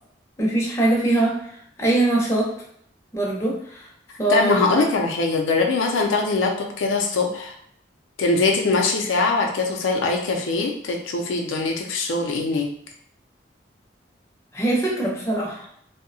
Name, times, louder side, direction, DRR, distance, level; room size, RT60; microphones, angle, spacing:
voice 1, 0.4-2.5 3.1-3.9 4.2-4.9 14.5-15.7, right 2 dB, 15° left, -3 dB, 0.5 m, -22 dB
voice 2, 4.3-7.5 8.2-12.7, left 3 dB, 90° left, 2 dB, 0.4 m, -22 dB
2.6 x 2.0 x 2.6 m, 0.68 s
head